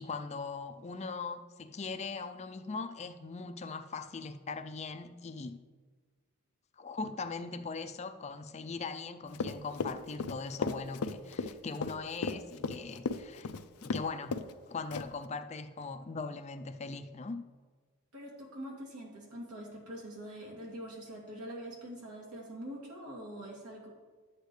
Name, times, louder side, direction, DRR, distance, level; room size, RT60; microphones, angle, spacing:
voice 1, 0.0-5.6 6.8-13.5 13.8-14.4 14.7-17.4, left 4 dB, 30° left, 0.4 m, -40 dB
Run, 9.3-14.0 14.3-14.5 14.9-15.2, left 4 dB, 80° left, 0.5 m, -35 dB
voice 2, 18.1-23.9, equal, 80° right, 2.6 m, -44 dB
12.0 x 8.2 x 3.2 m
head